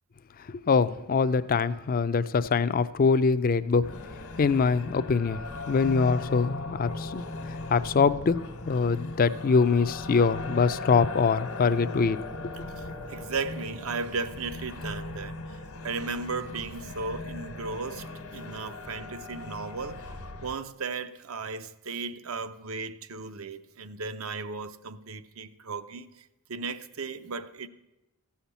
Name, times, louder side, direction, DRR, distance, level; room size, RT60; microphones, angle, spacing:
voice 1, 0.7-3.8 4.4-5.4 5.7-8.4 8.6-12.2, left 5 dB, 40° left, 0.4 m, -24 dB
sound 1, 3.8-20.6, left 2 dB, 75° left, 1.4 m, -38 dB
voice 2, 12.8-20.1 20.4-27.7, right 4 dB, 65° right, 0.6 m, -36 dB
14.5 x 5.8 x 8.2 m
head